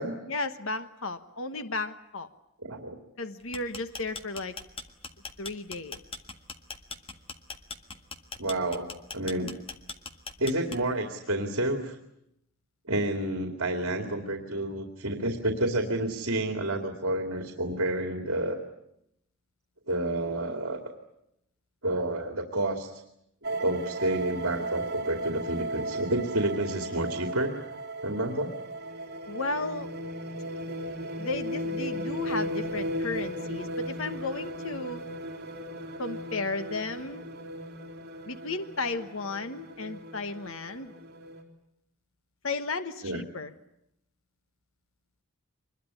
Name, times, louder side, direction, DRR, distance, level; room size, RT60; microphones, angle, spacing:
voice 1, 0.3-2.3 3.2-4.6 5.4-6.0 29.3-29.9 31.2-35.0 36.0-37.2 38.3-40.9 42.4-43.5, left 3 dB, 60° left, 10 dB, 1.2 m, -34 dB
voice 2, 2.6-3.0 8.4-9.5 10.4-12.0 12.9-18.6 19.9-20.8 21.8-23.0 23.4-27.5 28.0-28.5 43.0-43.2, right 1 dB, 65° right, 5 dB, 2.5 m, -29 dB
sound 1, 3.4-11.1, left 4 dB, 25° left, 1.5 m, -40 dB
sound 2, 23.4-41.4, right 1 dB, 45° right, 3.7 m, -36 dB
25.0 x 21.5 x 9.7 m, 0.82 s
head